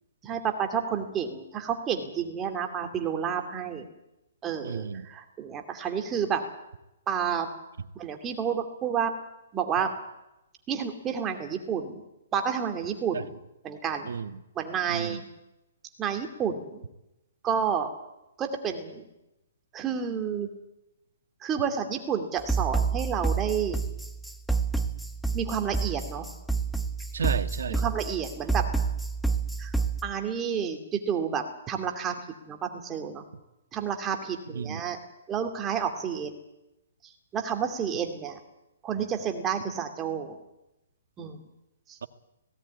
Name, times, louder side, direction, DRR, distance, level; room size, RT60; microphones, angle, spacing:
voice 1, 0.2-3.9 4.4-6.4 7.1-7.5 8.0-9.1 9.5-9.9 10.7-12.0 12.3-13.3 13.6-14.1 14.6-15.2 16.0-16.8 17.4-17.9 18.4-19.0 19.7-20.5 21.4-23.8 25.3-26.3 27.7-28.7 29.6-29.7 30.0-32.2 32.5-33.2 33.7-35.0 35.3-36.4 37.3-38.4 38.8-40.4 41.2-41.4 41.9-42.0, right 7 dB, 15° right, 5 dB, 2.6 m, -30 dB
voice 2, 4.6-5.1 13.1-13.2 14.1-14.4 14.9-15.2 27.1-27.8 34.5-34.8, right 6 dB, 75° right, 10 dB, 1.5 m, -32 dB
sound 1, 22.4-30.0, right 4 dB, ahead, 1.0 m, -29 dB
17.5 x 17.5 x 9.7 m, 0.92 s
hypercardioid pair, 155°, 0 cm